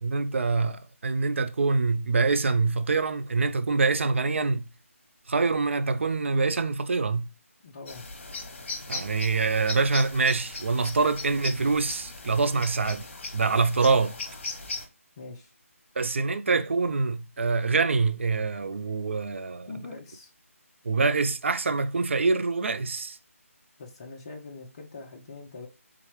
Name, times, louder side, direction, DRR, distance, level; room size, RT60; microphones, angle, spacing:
voice 1, 0.0-4.7 5.3-7.3 8.9-14.2 16.0-19.7 20.8-23.2, right 4 dB, 55° right, 0.4 m, -25 dB
voice 2, 7.6-8.1 15.2-15.5 19.7-20.3 23.8-25.7, left 3 dB, 25° left, 0.5 m, -42 dB
sound 1, 7.9-14.9, left 3 dB, 50° left, 1.0 m, -38 dB
3.7 x 3.0 x 3.1 m
figure-of-eight pair, 165°, 8 cm